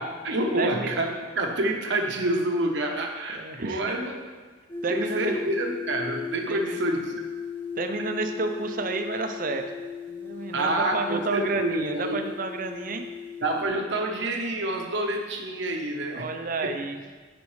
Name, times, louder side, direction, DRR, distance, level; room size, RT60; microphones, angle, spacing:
voice 1, 0.0-4.1 4.9-7.2 10.5-12.2 13.4-16.3 16.6-16.7, right 1 dB, 65° right, 2 dB, 0.9 m, -28 dB
voice 2, 0.6-0.9 3.3-4.0 4.8-5.3 6.5-6.8 7.8-9.6 10.1-13.1 16.1-17.0, right 3 dB, 45° right, 6 dB, 0.6 m, -30 dB
sound 1, 4.7-13.6, left 7 dB, 10° left, 0.7 m, -36 dB
10.5 x 5.2 x 3.2 m, 1.4 s
head